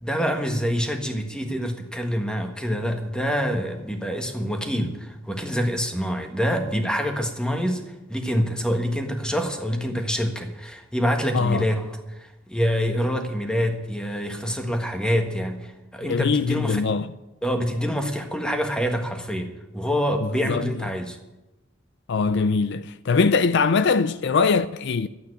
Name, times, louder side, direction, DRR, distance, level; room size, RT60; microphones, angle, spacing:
voice 1, 0.0-7.8 8.1-16.8 17.4-21.2, equal, 5° left, 1.5 m, -26 dB
voice 2, 11.3-11.7 16.1-17.1 20.5-20.6 22.1-25.1, left 4 dB, 60° left, 0.5 m, -21 dB
12.5 x 8.7 x 9.8 m
head